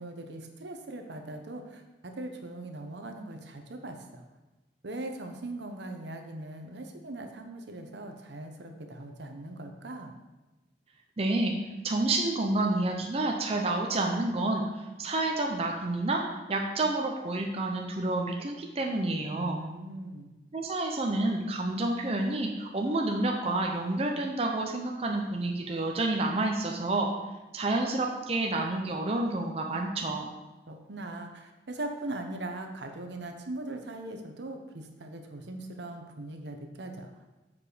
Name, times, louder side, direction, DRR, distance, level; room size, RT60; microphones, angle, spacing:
voice 1, 0.0-4.2 4.8-10.1 19.3-20.3 30.7-37.1, right 2 dB, 70° right, 5 dB, 0.8 m, -40 dB
voice 2, 11.2-11.5 11.8-16.2 16.5-19.6 20.5-27.1 27.5-30.3, right 2 dB, 35° right, 1 dB, 0.6 m, -29 dB
7.4 x 4.8 x 4.9 m, 1.1 s
head